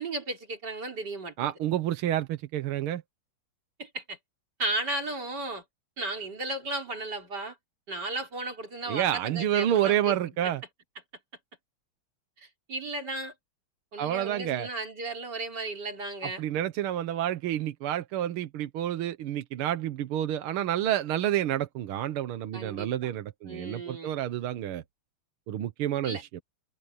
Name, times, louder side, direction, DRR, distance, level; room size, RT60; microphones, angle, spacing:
voice 1, 0.0-1.5 3.8-4.2 4.6-5.6 6.0-7.6 7.9-10.1 10.4-10.5 12.4-13.3 13.9-16.4 22.5-23.1 23.5-24.2 26.0-26.2, right 2 dB, 50° right, 4.3 m, -35 dB
voice 2, 1.4-3.0 8.9-10.6 14.0-14.7 16.2-24.8 25.5-26.4, right 11 dB, 80° right, 1.9 m, -29 dB
omnidirectional pair, 2.3 m